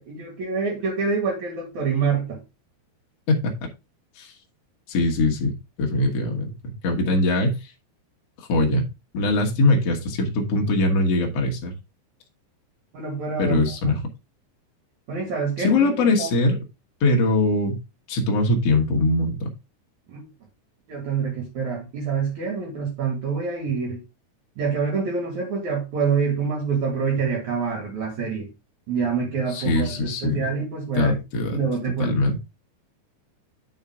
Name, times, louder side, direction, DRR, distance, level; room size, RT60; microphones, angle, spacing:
voice 1, 0.1-2.4 12.9-13.9 15.1-16.3 20.1-20.3 20.9-24.0 24.6-28.5 28.9-31.2 31.5-32.2, right 5 dB, 50° right, 3.0 m, -26 dB
voice 2, 4.9-7.7 8.4-8.8 9.1-11.7 13.4-14.0 15.6-16.6 17.0-17.8 18.1-19.5 29.5-30.4 30.9-31.6 32.0-32.4, left 2 dB, 80° left, 1.4 m, -22 dB
8.9 x 5.6 x 3.7 m
omnidirectional pair, 5.3 m